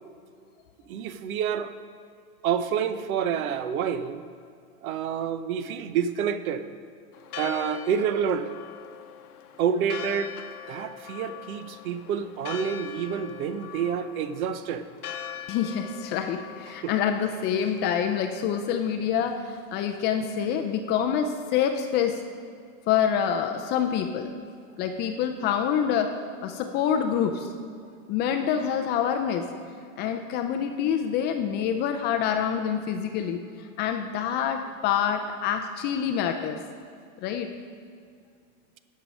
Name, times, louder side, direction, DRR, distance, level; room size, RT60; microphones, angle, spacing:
voice 1, 0.9-1.7 2.4-4.2 4.8-6.6 7.4-8.5 9.6-10.3 10.7-14.9 16.8-16.9, right 7 dB, 70° right, 12 dB, 0.8 m, -28 dB
Church bell, 7.1-18.7, left 9 dB, 85° left, 0.9 m, -42 dB
voice 2, 15.5-22.2 22.9-24.3 24.8-26.1 26.4-27.5 28.1-29.4 30.0-36.6 37.2-37.5, left 8 dB, 25° left, 5 dB, 0.3 m, -26 dB
10.0 x 5.6 x 6.1 m, 2.3 s
hypercardioid pair, 115°, 44 cm